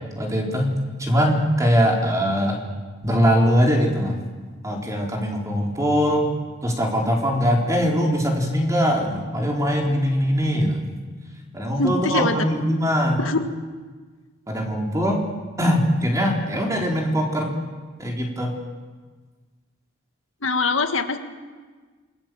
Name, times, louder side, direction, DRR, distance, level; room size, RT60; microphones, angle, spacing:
voice 1, 0.2-2.6 3.0-4.2 4.6-6.3 6.6-10.9 11.5-13.2 14.5-15.2 15.6-17.5 18.0-18.5, equal, 15° right, 0 dB, 4.1 m, -21 dB
voice 2, 11.8-12.4 13.2-13.6 20.4-21.2, left 3 dB, 70° left, 7 dB, 1.8 m, -23 dB
28.0 x 21.5 x 7.7 m, 1.4 s
head